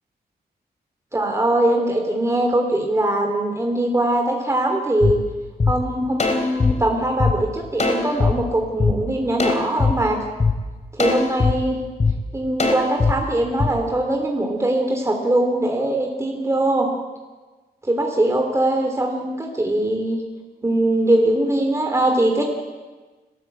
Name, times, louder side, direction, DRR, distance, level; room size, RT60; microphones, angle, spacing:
voice 1, 1.1-5.2 5.7-10.2 10.9-11.8 12.3-16.9 17.8-20.2 20.6-22.5, right 1 dB, 15° right, 2 dB, 2.9 m, -21 dB
sound 1, 5.0-5.1 5.6-5.7 6.2-7.3 7.8-8.3 8.8-8.9 9.4-9.9 10.4-10.5 11.0-11.5 12.0-12.1 12.6-13.1 13.6-13.7, left 4 dB, 45° left, 3.5 m, -19 dB
29.0 x 14.5 x 7.9 m, 1.3 s
wide cardioid pair, 125°, 16 cm